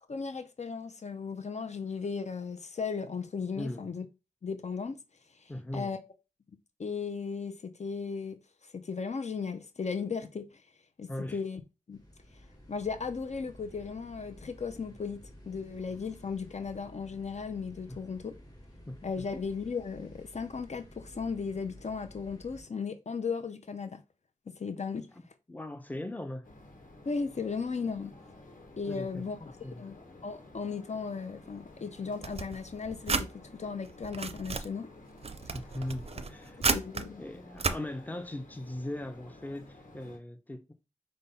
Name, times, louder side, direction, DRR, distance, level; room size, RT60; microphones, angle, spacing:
voice 1, 0.1-4.1 4.4-5.0 5.7-6.0 6.8-8.4 8.7-10.5 11.0-11.6 11.9-12.0 12.7-15.2 15.5-18.3 19.0-24.0 24.5-25.1 27.1-28.1 28.8-30.0 30.2-34.9 36.7-37.2, left 5 dB, 60° left, 0.5 m, -36 dB
voice 2, 3.6-3.9 5.5-5.9 11.1-11.4 17.9-18.1 18.9-19.3 25.1-26.5 28.9-29.9 35.5-36.6 37.2-40.7, left 1 dB, 10° left, 0.6 m, -39 dB
sound 1, 11.9-22.6, equal, 30° left, 1.6 m, -52 dB
sound 2, 26.4-40.2, left 2 dB, 85° left, 1.2 m, -53 dB
sound 3, 32.2-33.3 33.9-34.7 35.2-37.0 37.6-37.8, right 4 dB, 50° right, 0.4 m, -32 dB
5.2 x 2.2 x 4.0 m
wide cardioid pair, 65°, 13 cm